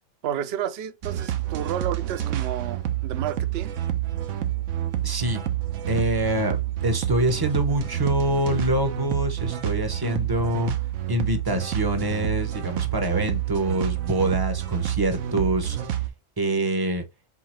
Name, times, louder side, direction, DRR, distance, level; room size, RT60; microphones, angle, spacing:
voice 1, 0.2-3.7, right 10 dB, 60° right, 0.7 m, -31 dB
sound 1, 1.0-16.1, right 12 dB, 75° right, 1.0 m, -28 dB
voice 2, 5.0-5.4 5.9-10.7 11.1-15.8 16.4-17.0, right 1 dB, 20° right, 0.7 m, -25 dB
4.5 x 3.8 x 3.0 m
omnidirectional pair, 1.3 m